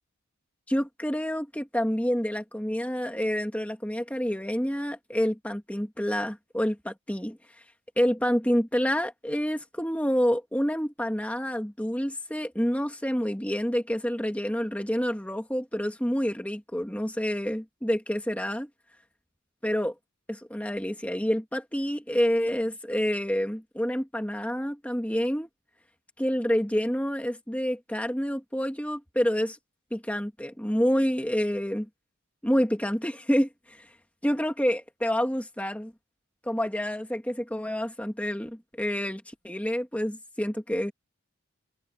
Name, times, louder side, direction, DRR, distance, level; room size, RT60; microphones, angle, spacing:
voice 1, 0.7-7.4 8.0-18.7 19.6-19.9 20.3-25.5 26.2-29.6 29.9-31.9 32.4-33.9 34.2-35.9 36.4-40.9, equal, 5° left, 1.7 m, -28 dB
head